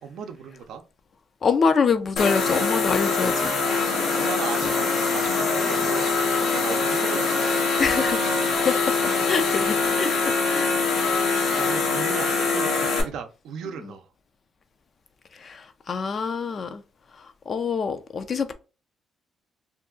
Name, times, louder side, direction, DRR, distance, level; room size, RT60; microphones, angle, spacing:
voice 1, 0.0-0.8 4.1-7.8 11.6-14.0, right 6 dB, 80° right, 0.5 m, -36 dB
voice 2, 1.4-3.5 7.8-8.9 9.2-10.8 13.8-13.9 15.3-16.8 17.2-18.5, left 5 dB, 45° left, 0.4 m, -26 dB
sound 1, 2.2-13.0, left 4 dB, 80° left, 0.9 m, -23 dB
2.6 x 2.3 x 3.6 m
cardioid pair, 90°, 0 cm